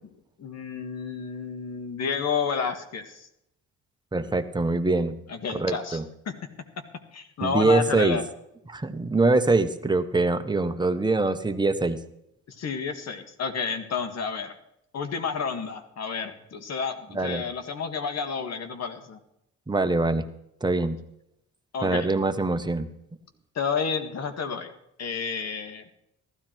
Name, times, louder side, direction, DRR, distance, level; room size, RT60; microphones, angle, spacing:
voice 1, 0.4-3.3 5.3-6.0 6.3-6.4 7.1-8.2 12.5-14.5 14.9-19.2 21.7-22.1 23.6-24.7 25.0-25.9, left 6 dB, 60° left, 8 dB, 1.9 m, -30 dB
voice 2, 4.1-5.2 5.5-6.0 7.4-8.2 8.7-12.0 17.1-17.4 19.7-20.3 20.6-21.0 21.8-22.9, right 3 dB, 15° right, 8 dB, 1.2 m, -24 dB
15.0 x 13.0 x 4.6 m, 0.78 s
cardioid pair, 90°, 30 cm